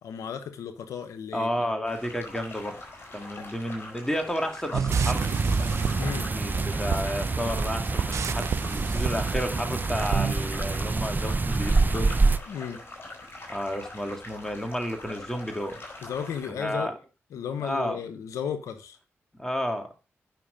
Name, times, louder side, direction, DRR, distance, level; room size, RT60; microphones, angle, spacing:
voice 1, 0.0-1.5 3.4-3.5 6.0-6.3 12.5-12.8 16.0-16.9 17.3-19.0, left 8 dB, 85° left, 0.9 m, -34 dB
voice 2, 1.3-2.8 3.1-5.3 6.3-12.1 13.5-15.8 16.6-16.9 17.6-18.0 19.4-19.9, equal, 10° left, 2.5 m, -31 dB
sound 1, 1.9-16.5, left 2 dB, 45° left, 4.9 m, -43 dB
sound 2, 4.7-10.4, right 8 dB, 75° right, 0.4 m, -31 dB
sound 3, 4.9-12.4, right 3 dB, 35° right, 0.8 m, -26 dB
9.4 x 6.0 x 5.0 m
supercardioid pair, 45°, 5 cm